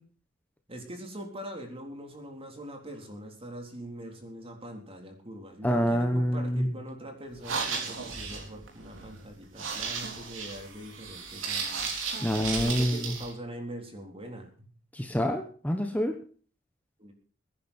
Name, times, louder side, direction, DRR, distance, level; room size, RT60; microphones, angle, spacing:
voice 1, 0.7-11.9 12.5-14.7 17.0-17.1, right 1 dB, 30° right, 3 dB, 3.9 m, -42 dB
voice 2, 5.6-6.7 12.2-13.2 14.9-16.1, equal, 10° left, 4 dB, 1.2 m, -27 dB
sound 1, 7.3-13.3, right 5 dB, 80° right, 4.1 m, -35 dB
22.0 x 10.5 x 4.5 m, 0.42 s
head